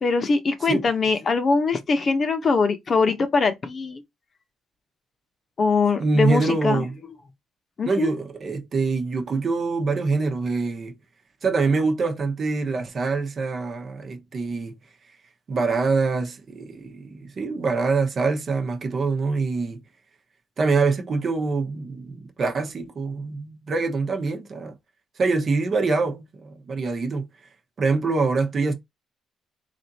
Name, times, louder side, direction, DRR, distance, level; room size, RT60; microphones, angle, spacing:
voice 1, 0.0-4.0 5.6-6.9 7.8-8.1, left 4 dB, 45° left, 0.9 m, -22 dB
voice 2, 6.0-6.9 7.9-10.9 11.4-14.7 15.5-19.8 20.6-24.7 25.2-27.3 27.8-28.7, right 4 dB, 45° right, 0.9 m, -24 dB
3.4 x 2.6 x 4.0 m
cardioid pair, 90°, 0 cm